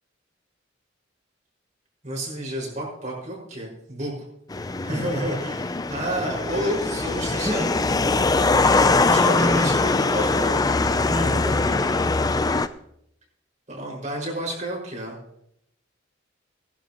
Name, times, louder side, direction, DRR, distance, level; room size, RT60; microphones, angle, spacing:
voice 1, 2.0-4.2 4.8-7.7 8.7-11.2 11.4-11.9 13.7-15.2, right 1 dB, 40° right, -2 dB, 5.5 m, -31 dB
sound 1, 4.5-12.7, left 3 dB, 20° left, 0.4 m, -22 dB
voice 2, 7.4-8.4 8.7-9.9 11.1-12.3, equal, 10° right, -2 dB, 1.3 m, -30 dB
19.0 x 11.5 x 3.0 m, 0.75 s
head